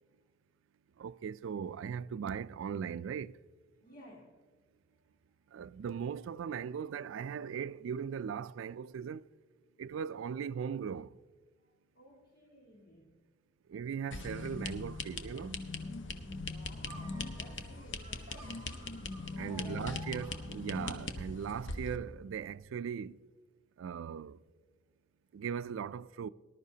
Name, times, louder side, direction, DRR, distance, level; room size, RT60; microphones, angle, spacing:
voice 1, 1.0-3.3 5.5-9.2 9.8-11.1 13.7-15.6 19.4-23.1 23.8-24.4 25.3-26.3, right 7 dB, 80° right, 0.3 m, -39 dB
voice 2, 3.8-4.3 12.0-13.1 16.4-18.5 19.5-19.9, left 1 dB, 45° left, 1.7 m, -55 dB
sound 1, 14.1-22.0, left 3 dB, 65° left, 0.8 m, -41 dB
sound 2, 16.8-21.0, right 4 dB, 25° right, 1.6 m, -54 dB
19.0 x 11.5 x 2.8 m
head